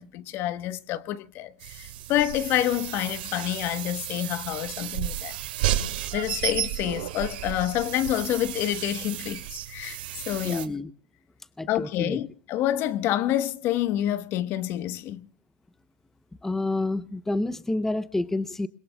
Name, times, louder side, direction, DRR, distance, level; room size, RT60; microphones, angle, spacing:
voice 1, 0.0-5.4 6.1-10.0 10.3-10.7 11.7-15.3, left 13 dB, 45° left, 1.1 m, -28 dB
sound 1, 1.6-10.7, right 12 dB, 75° right, 2.3 m, -33 dB
voice 2, 10.4-10.9 11.6-12.2 16.4-18.7, left 2 dB, 5° left, 0.7 m, -28 dB
29.5 x 21.0 x 2.3 m
supercardioid pair, 115°, 5 cm